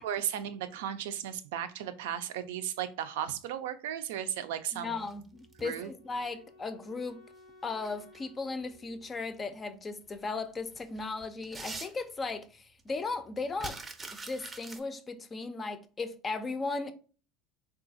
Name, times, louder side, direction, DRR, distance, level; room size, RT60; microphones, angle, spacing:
voice 1, 0.0-5.0 5.6-5.9, right 10 dB, 80° right, 0.4 m, -35 dB
voice 2, 4.7-7.2 7.6-13.8 14.1-16.9, left 3 dB, 25° left, 0.4 m, -36 dB
sound 1, 4.9-5.9 7.5-8.2 8.7-8.8 10.1-10.2 10.6-12.4 12.8-12.9 13.1-14.8, right 3 dB, 20° right, 0.6 m, -44 dB
Wind instrument woodwind instrument, 5.3-10.4, left 2 dB, 80° left, 0.5 m, -59 dB
3.7 x 2.4 x 2.5 m
hypercardioid pair, 90°, 0 cm